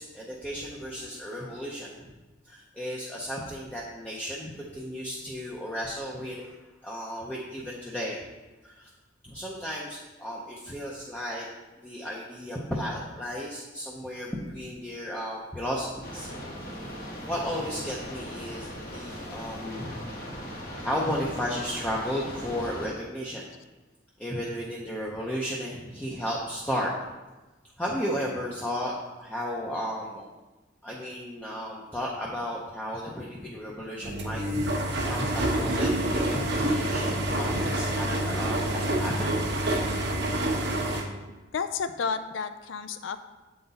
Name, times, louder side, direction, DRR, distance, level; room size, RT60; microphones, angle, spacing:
voice 1, 0.0-2.1 2.4-6.6 6.8-8.2 8.6-8.9 9.2-11.5 11.8-16.3 17.3-20.0 20.8-23.4 24.2-26.9 27.8-30.2 30.8-34.4 35.1-39.5, equal, 5° left, -4 dB, 0.6 m, -34 dB
sound 1, 16.0-22.9, equal, 50° left, 1.1 m, -39 dB
sound 2, 34.0-41.0, right 1 dB, 60° right, 0.9 m, -27 dB
voice 2, 41.5-43.2, left 5 dB, 75° left, 11 dB, 0.4 m, -31 dB
7.8 x 3.9 x 4.0 m, 1.2 s
head